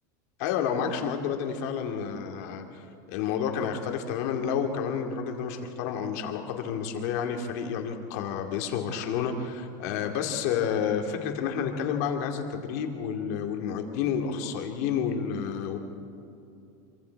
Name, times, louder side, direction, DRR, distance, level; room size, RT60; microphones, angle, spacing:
voice 1, 0.4-2.6 3.1-15.8, left 7 dB, 55° left, 3 dB, 2.5 m, -30 dB
26.5 x 24.5 x 4.7 m, 2.7 s
supercardioid pair, 180°, 10 cm